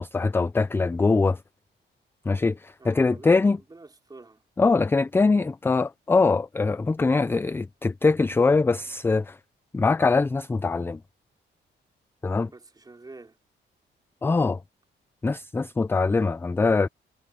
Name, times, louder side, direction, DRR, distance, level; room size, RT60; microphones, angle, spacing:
voice 1, 0.0-1.4 2.3-3.6 4.6-9.4 9.7-11.0 12.2-12.5 14.2-14.6 15.2-16.9, left 3 dB, 10° left, 0.3 m, -22 dB
voice 2, 2.8-4.4 12.5-13.4, right 3 dB, 20° right, 5.0 m, -47 dB
cardioid pair, 125°, 19 cm